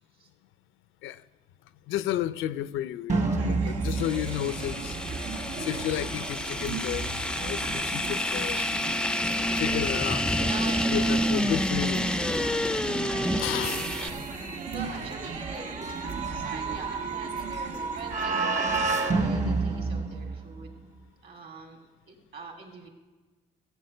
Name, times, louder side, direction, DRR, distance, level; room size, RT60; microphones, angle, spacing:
voice 1, 1.9-5.0 5.4-8.6 9.6-12.0 13.4-13.9, left 12 dB, 85° left, 0.4 m, -32 dB
sound 1, 3.1-20.8, right 3 dB, 35° right, 1.3 m, -33 dB
sound 2, 3.4-18.9, right 4 dB, 90° right, 1.4 m, -38 dB
sound 3, 4.0-14.1, left 1 dB, 5° left, 0.3 m, -29 dB
voice 2, 10.4-11.3 12.5-14.3 14.7-15.7 16.4-20.7 21.2-22.9, right 4 dB, 55° right, 3.1 m, -43 dB
14.0 x 8.2 x 6.5 m
cardioid pair, 90°, 20 cm